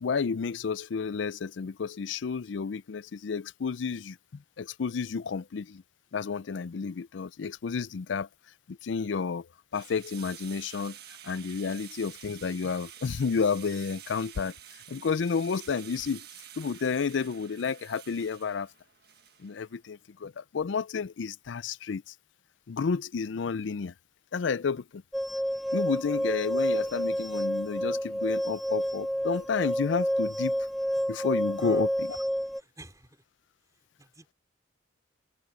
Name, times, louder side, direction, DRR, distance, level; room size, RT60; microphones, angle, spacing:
voice 1, 0.0-4.2 4.6-5.8 6.1-8.3 8.7-9.5 9.7-11.0 11.2-14.5 14.9-16.3 16.6-18.7 19.4-22.1 22.7-23.9 24.3-25.0 25.7-30.6 31.1-32.2, left 5 dB, 75° left, 0.4 m, -31 dB
sound 1, 9.7-19.7, right 11 dB, 55° right, 1.7 m, -49 dB
sound 2, 25.1-32.6, equal, ahead, 0.4 m, -29 dB
voice 2, 31.6-31.9 32.6-33.2 34.0-34.3, right 1 dB, 20° right, 4.2 m, -48 dB
head